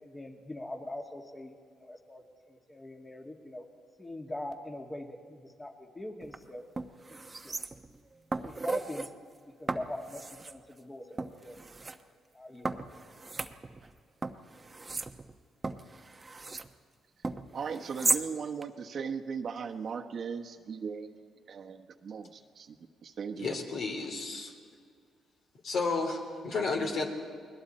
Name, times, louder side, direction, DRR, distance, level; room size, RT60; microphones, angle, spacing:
voice 1, 0.0-3.6 4.0-6.6 7.1-7.5 8.4-9.1 9.6-10.2 10.5-11.6 12.3-12.7, left 1 dB, 20° left, 3 dB, 2.1 m, -42 dB
sound 1, 6.2-6.4 6.8-8.0 8.3-9.1 9.7-10.6 11.2-12.0 12.6-13.9 14.2-16.7 17.2-18.3 18.6-18.7, right 3 dB, 25° right, 0.9 m, -35 dB
voice 2, 17.5-23.6, right 6 dB, 55° right, 4 dB, 1.2 m, -38 dB
voice 3, 23.4-24.5 25.6-27.1, left 3 dB, 65° left, 3 dB, 3.3 m, -32 dB
29.5 x 20.5 x 4.3 m, 2.1 s
cardioid pair, 90°, 0 cm